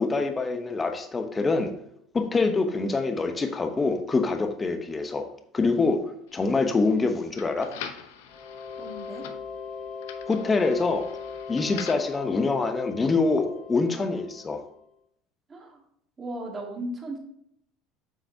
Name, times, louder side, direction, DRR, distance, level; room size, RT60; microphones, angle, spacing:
voice 1, 0.0-1.7 2.1-5.3 5.5-6.0 6.3-7.7 10.3-11.1 11.5-14.6, left 3 dB, 20° left, 6 dB, 0.9 m, -25 dB
sound 1, 6.3-12.2, left 8 dB, 85° left, 0.7 m, -44 dB
sound 2, 8.3-14.9, left 5 dB, 45° left, 2.4 m, -40 dB
voice 2, 8.8-9.2 15.5-15.8 16.2-17.2, right 1 dB, 25° right, 0 dB, 2.2 m, -36 dB
7.9 x 5.7 x 2.8 m, 0.72 s
supercardioid pair, 110°, 0 cm